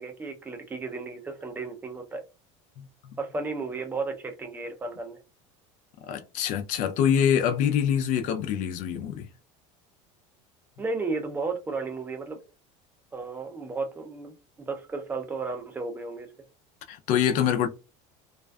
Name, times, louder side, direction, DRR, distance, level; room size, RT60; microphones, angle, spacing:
voice 1, 0.0-2.2 3.2-5.2 10.8-12.4 13.1-16.3, right 3 dB, 10° right, 0.4 m, -33 dB
voice 2, 6.1-9.3 16.9-17.7, left 9 dB, 50° left, 0.4 m, -25 dB
2.4 x 2.3 x 2.2 m
supercardioid pair, 140°, 17 cm